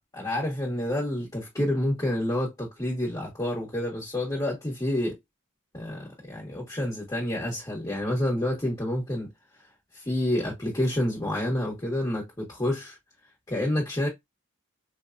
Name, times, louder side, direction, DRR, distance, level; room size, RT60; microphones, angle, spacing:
voice 1, 0.1-5.2 5.7-9.3 9.9-13.0 13.5-14.1, left 1 dB, 20° left, 1.3 m, -28 dB
4.5 x 2.2 x 2.4 m
head